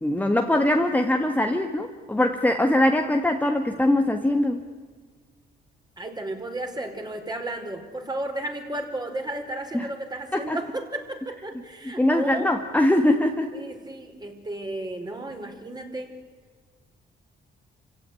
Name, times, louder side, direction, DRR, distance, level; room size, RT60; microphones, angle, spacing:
voice 1, 0.0-4.6 9.7-9.9 10.3-10.6 11.8-13.5, left 1 dB, 10° left, 4 dB, 1.7 m, -22 dB
voice 2, 6.0-12.5 13.5-16.2, right 1 dB, 20° right, 4 dB, 4.5 m, -33 dB
27.0 x 16.5 x 9.7 m, 1.5 s
cardioid pair, 90°, 20 cm